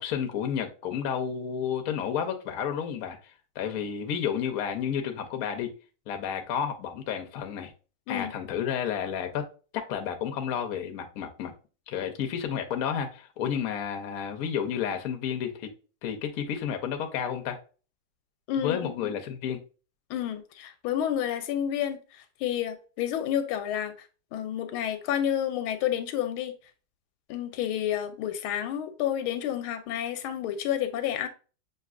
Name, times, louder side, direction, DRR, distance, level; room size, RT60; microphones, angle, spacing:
voice 1, 0.0-3.2 3.6-5.7 6.1-7.7 8.1-9.5 9.7-11.5 11.9-15.7 16.0-17.6 18.6-19.6, left 8 dB, 65° left, 0.9 m, -31 dB
voice 2, 18.5-19.1 20.1-23.9 24.3-26.5 27.3-31.3, left 10 dB, 90° left, 1.5 m, -30 dB
6.5 x 2.7 x 2.4 m
omnidirectional pair, 2.2 m